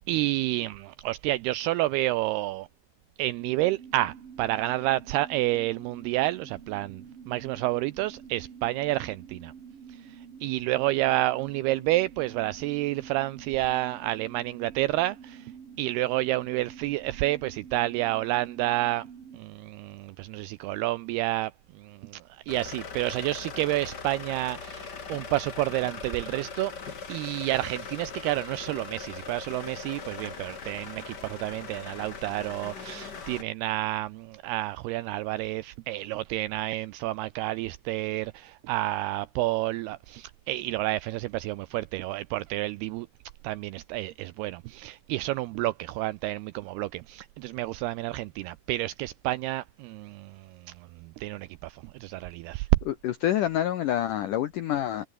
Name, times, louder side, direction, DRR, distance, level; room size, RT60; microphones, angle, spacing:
voice 1, 0.1-2.7 3.2-9.5 9.9-15.5 15.8-19.1 19.3-21.5 21.8-26.7 27.1-43.1 43.4-50.7 51.0-52.7, right 17 dB, 85° right, 2.3 m, -30 dB
sound 1, 3.4-19.4, right 7 dB, 40° right, 2.7 m, -47 dB
sound 2, 22.5-33.4, left 5 dB, 35° left, 1.9 m, -40 dB
voice 2, 52.9-55.1, left 12 dB, 80° left, 1.9 m, -27 dB
omnidirectional pair, 5.1 m